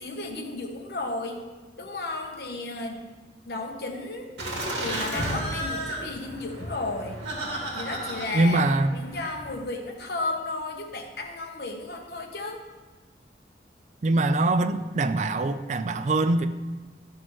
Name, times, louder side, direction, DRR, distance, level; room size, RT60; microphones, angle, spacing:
voice 1, 0.0-1.4 1.8-3.1 3.5-4.3 4.8-7.2 7.7-8.6 8.9-12.6, left 2 dB, 65° left, 1.1 m, -33 dB
Laughter, 4.4-9.5, right 1 dB, 80° right, 2.1 m, -33 dB
voice 2, 8.3-8.9 14.0-16.5, right 2 dB, 40° right, 0.4 m, -23 dB
12.0 x 6.1 x 3.1 m
head